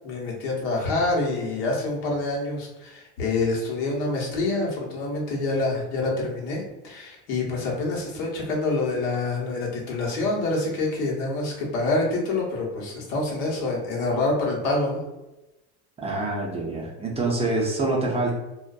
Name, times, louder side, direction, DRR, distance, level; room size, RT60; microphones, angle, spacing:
voice 1, 0.0-15.0, left 2 dB, 75° left, -2 dB, 1.0 m, -26 dB
voice 2, 16.0-18.3, right 2 dB, 20° right, -2 dB, 0.4 m, -26 dB
2.4 x 2.2 x 2.3 m, 0.99 s
supercardioid pair, 125°, 33 cm